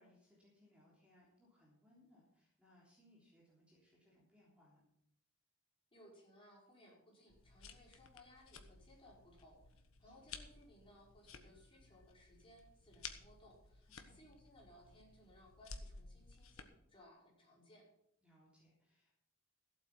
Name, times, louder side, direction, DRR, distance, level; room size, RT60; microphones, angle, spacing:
voice 1, 0.0-4.8 10.0-10.3 14.0-14.2 18.2-19.2, left 1 dB, 5° right, -6 dB, 3.5 m, -69 dB
voice 2, 5.9-9.6 10.0-17.9, left 1 dB, 25° left, -4 dB, 5.3 m, -63 dB
sound 1, 7.3-16.6, left 5 dB, 75° left, 1.3 m, -55 dB
14.5 x 8.3 x 6.0 m, 0.74 s
head